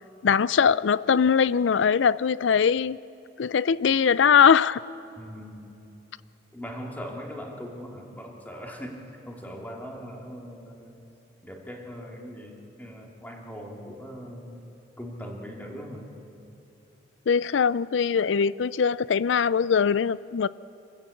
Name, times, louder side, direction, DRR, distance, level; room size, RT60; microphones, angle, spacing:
voice 1, 0.2-3.0 3.4-4.8 17.3-20.5, left 6 dB, 80° left, 19 dB, 0.4 m, -21 dB
voice 2, 5.2-5.7 6.5-9.0 9.3-11.0 11.4-14.7 15.0-16.1, equal, 10° left, 0 dB, 2.6 m, -40 dB
26.5 x 15.0 x 8.5 m, 2.8 s
head